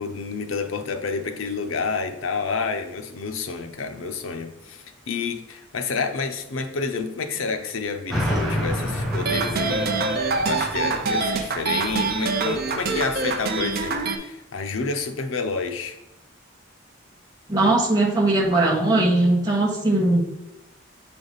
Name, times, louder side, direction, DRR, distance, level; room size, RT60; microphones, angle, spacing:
voice 1, 0.0-9.9 10.4-16.0, left 4 dB, 90° left, 7 dB, 0.6 m, -29 dB
sound 1, 8.1-13.9, equal, ahead, 1.0 m, -30 dB
sound 2, 9.1-14.2, right 3 dB, 50° right, 0.5 m, -25 dB
voice 2, 17.5-20.2, right 2 dB, 20° right, -4 dB, 1.2 m, -19 dB
6.9 x 3.5 x 4.0 m, 0.91 s
head